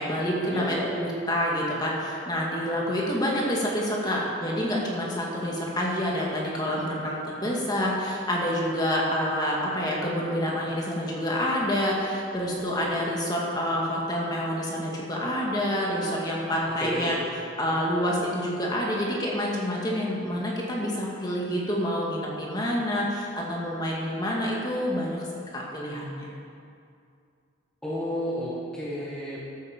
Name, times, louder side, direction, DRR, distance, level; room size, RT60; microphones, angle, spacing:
voice 1, 0.0-17.2 17.6-25.2 25.5-26.3, equal, 20° left, -4 dB, 2.1 m, -27 dB
voice 2, 0.5-0.9 16.8-17.1 27.8-29.4, equal, 5° left, -7 dB, 1.8 m, -31 dB
12.5 x 8.3 x 7.2 m, 2.4 s
head